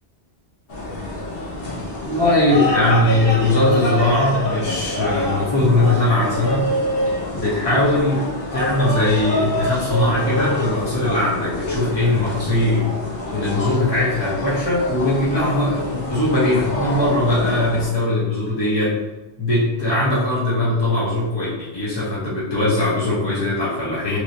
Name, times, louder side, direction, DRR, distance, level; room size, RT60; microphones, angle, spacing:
sound 1, 0.7-17.9, left 1 dB, 60° left, 0.9 m, -26 dB
voice 1, 2.0-6.7 7.3-8.2 8.5-12.9 13.3-19.0 19.4-24.2, left 2 dB, 30° left, -8 dB, 0.6 m, -20 dB
3.1 x 3.0 x 2.6 m, 1.1 s
omnidirectional pair, 1.1 m